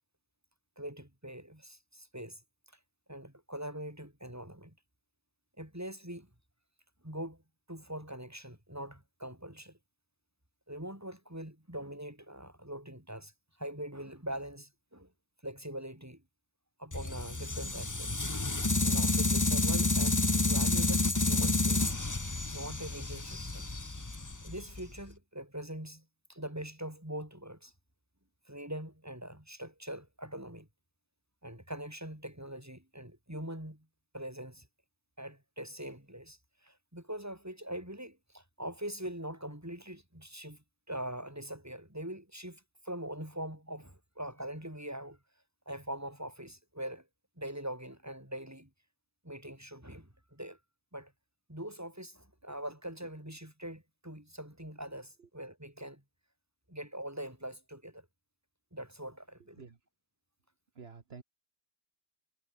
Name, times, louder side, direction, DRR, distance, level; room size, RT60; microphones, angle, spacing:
voice 1, 0.8-2.4 3.1-4.7 5.6-6.3 7.0-7.4 7.7-9.8 10.7-13.3 13.6-15.1 15.4-16.2 16.8-18.3 18.8-21.9 22.5-23.7 24.4-27.7 28.5-30.7 31.4-33.9 34.1-34.7 35.2-45.2 45.6-47.1 47.4-48.7 49.2-50.6 50.9-51.1 51.5-56.0 56.7-58.1 58.7-59.7, right 1 dB, 15° right, 5.1 m, -43 dB
sound 1, 16.9-25.0, left 2 dB, 15° left, 1.0 m, -30 dB
voice 2, 60.7-61.2, right 5 dB, 55° right, 1.7 m, -49 dB
omnidirectional pair, 1.2 m